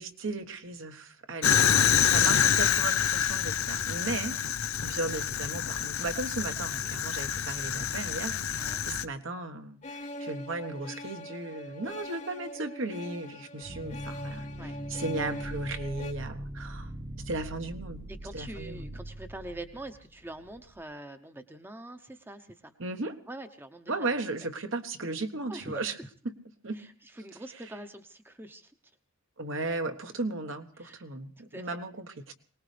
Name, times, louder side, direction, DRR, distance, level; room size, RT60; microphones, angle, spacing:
voice 1, 0.0-1.6 2.0-4.4 4.8-14.5 14.9-16.9 17.2-18.1 18.3-19.0 22.8-23.2 23.9-25.9 26.6-26.8 29.4-32.3, right 2 dB, 65° right, 7 dB, 1.2 m, -36 dB
Fire, 1.4-9.1, left 9 dB, 85° left, 0.7 m, -27 dB
sound 1, 9.8-16.1, left 1 dB, 35° left, 1.0 m, -42 dB
sound 2, 13.6-20.8, right 1 dB, 40° right, 1.1 m, -41 dB
voice 2, 18.1-22.7 23.3-24.1 24.4-24.5 25.5-25.9 26.7-28.7 30.8-31.1 31.4-31.7, right 1 dB, 10° right, 8 dB, 0.8 m, -44 dB
22.5 x 19.0 x 3.3 m, 0.43 s
head